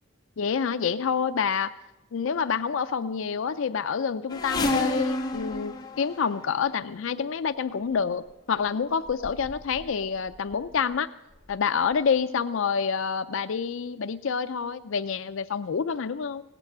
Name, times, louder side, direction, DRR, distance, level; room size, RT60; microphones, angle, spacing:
voice 1, 0.4-1.7 2.1-11.1 11.5-16.4, left 6 dB, 65° left, 11 dB, 0.4 m, -27 dB
sound 1, 4.3-6.8 7.8-8.0 8.7-8.8 9.1-9.9 10.3-10.8 11.5-11.6 11.9-12.0, left 2 dB, 20° left, 1.2 m, -30 dB
17.0 x 9.0 x 7.2 m, 0.97 s
head